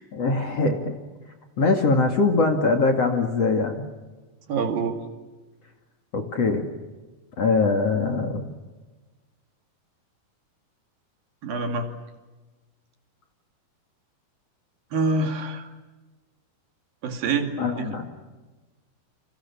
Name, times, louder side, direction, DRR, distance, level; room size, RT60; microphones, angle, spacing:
voice 1, 0.1-1.0 1.6-3.8 6.1-6.7 7.4-8.5 17.6-18.0, left 3 dB, 45° left, 4 dB, 2.8 m, -22 dB
voice 2, 4.5-5.0 11.4-11.9 14.9-15.7 17.0-17.9, right 3 dB, 60° right, 6 dB, 3.9 m, -26 dB
29.5 x 28.0 x 7.1 m, 1.2 s
omnidirectional pair, 4.8 m